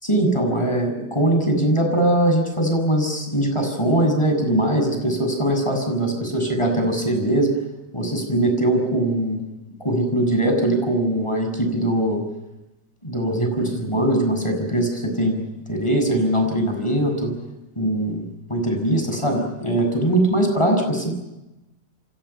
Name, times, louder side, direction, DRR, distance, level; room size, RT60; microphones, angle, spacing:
voice 1, 0.1-7.5 7.9-9.4 9.8-12.2 13.0-15.4 15.7-17.3 17.8-18.2 18.5-21.1, right 1 dB, 10° left, 4 dB, 6.8 m, -21 dB
29.0 x 26.0 x 5.8 m, 0.98 s
omnidirectional pair, 3.4 m